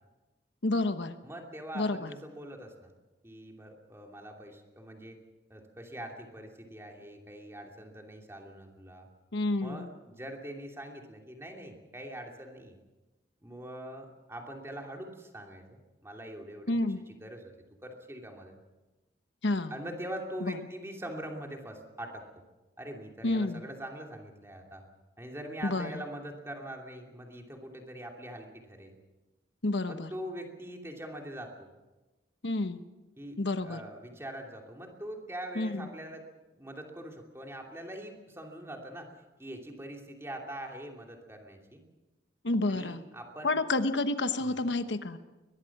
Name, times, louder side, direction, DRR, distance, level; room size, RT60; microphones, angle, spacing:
voice 1, 0.6-1.1 1.7-2.1 9.3-9.9 16.7-17.0 19.4-19.7 20.4-20.5 23.2-23.6 25.6-25.9 29.6-30.1 32.4-32.8 33.4-33.8 35.5-35.9 42.4-43.0 43.4-45.2, left 2 dB, 80° left, 9 dB, 1.1 m, -29 dB
voice 2, 1.2-2.9 3.2-5.2 5.5-9.1 9.6-12.8 13.4-16.7 17.2-17.5 17.8-18.5 19.7-22.2 22.8-24.8 25.2-29.0 29.9-31.7 33.2-36.2 36.6-39.1 39.4-41.8 42.7-43.5 44.4-44.7, right 1 dB, 15° right, 1 dB, 2.7 m, -43 dB
22.5 x 20.0 x 6.0 m, 1.1 s
head